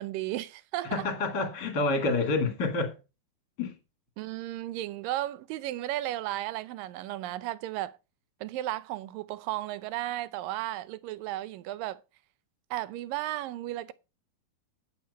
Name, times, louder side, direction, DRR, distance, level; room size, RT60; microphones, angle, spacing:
voice 1, 0.0-1.1 4.2-8.0 8.4-12.0 12.7-13.9, right 15 dB, 75° right, 2.2 m, -34 dB
voice 2, 0.8-3.0 3.6-3.7, left 3 dB, 35° left, 2.3 m, -28 dB
10.5 x 7.1 x 5.4 m
omnidirectional pair, 4.3 m